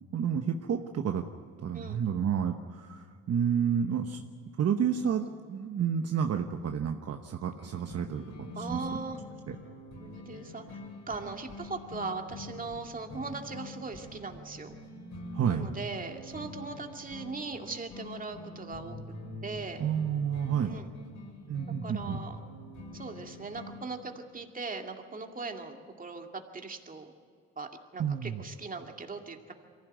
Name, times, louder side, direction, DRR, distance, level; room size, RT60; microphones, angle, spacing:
voice 1, 0.1-1.2 1.6-4.2 4.6-8.9 9.5-9.6 15.3-15.8 19.8-20.7 21.5-22.2 28.0-28.4, right 8 dB, 55° right, 5 dB, 1.1 m, -30 dB
sound 1, 7.6-23.8, left 1 dB, 75° left, 7.9 m, -45 dB
voice 2, 8.6-9.2 10.0-10.8 11.1-14.7 15.5-19.0 19.4-19.8 20.6-20.9 21.8-22.4 22.9-27.1 27.6-29.5, right 4 dB, 30° right, 4 dB, 2.3 m, -39 dB
23.5 x 15.5 x 9.2 m, 2.2 s
cardioid pair, 90°, 30 cm